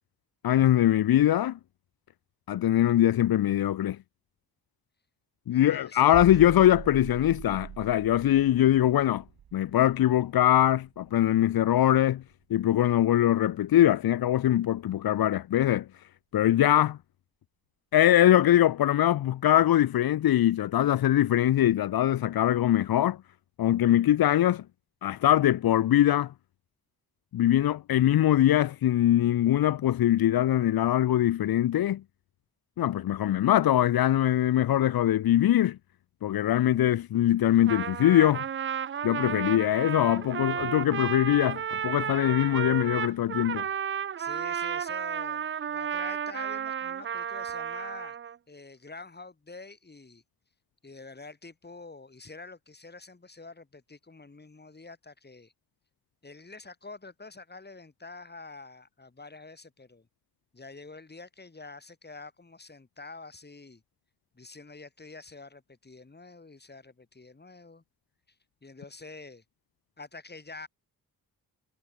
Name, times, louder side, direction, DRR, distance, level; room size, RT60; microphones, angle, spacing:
voice 1, 0.4-1.6 2.5-4.0 5.5-9.2 9.5-12.2 12.5-15.9 16.3-17.0 17.9-23.2 23.6-24.6 25.0-26.3 27.3-32.0 32.8-35.8 36.2-38.4 39.0-43.7, left 12 dB, 80° left, 0.8 m, -22 dB
voice 2, 5.5-6.4 44.2-48.2 48.5-50.2 50.8-55.5 56.2-60.1 60.5-63.8 64.3-67.8 68.6-69.4 70.0-70.7, left 3 dB, 30° left, 6.5 m, -47 dB
sound 1, 6.1-11.8 12.1-12.3, right 9 dB, 85° right, 3.4 m, -43 dB
Trumpet, 37.5-48.4, right 8 dB, 35° right, 0.4 m, -33 dB
cardioid pair, 90°, 36 cm